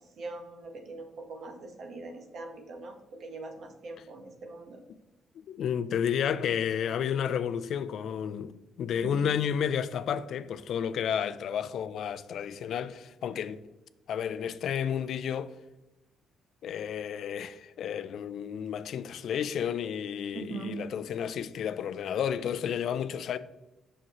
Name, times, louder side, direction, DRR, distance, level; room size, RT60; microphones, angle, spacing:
voice 1, 0.0-4.8 9.0-9.3 20.3-20.8, right 3 dB, 60° right, 1.1 m, -42 dB
voice 2, 5.4-13.6 14.1-15.5 16.6-23.4, left 8 dB, 70° left, 0.3 m, -31 dB
6.2 x 6.1 x 3.0 m
cardioid pair, 90°, 0 cm